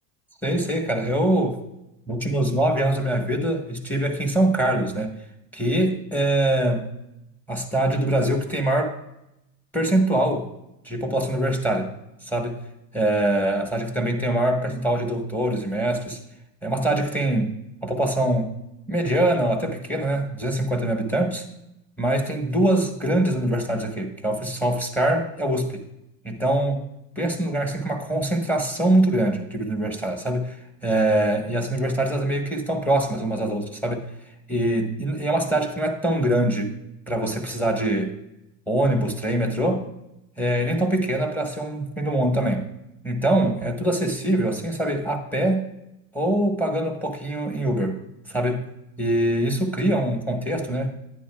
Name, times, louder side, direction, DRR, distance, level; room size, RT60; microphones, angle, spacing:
voice 1, 0.4-1.6 2.1-5.2 5.5-6.9 7.5-9.0 9.7-10.5 10.8-11.9 12.2-12.6 12.9-16.2 16.6-18.6 18.9-21.5 22.0-25.8 26.2-26.9 27.2-30.6 30.8-34.1 34.5-36.7 37.1-38.1 38.7-39.9 40.4-42.7 43.0-45.7 46.1-48.0 48.3-48.7 49.0-51.0, right 1 dB, 5° left, 4 dB, 1.2 m, -23 dB
10.0 x 9.5 x 2.3 m, 0.86 s
supercardioid pair, 115°, 48 cm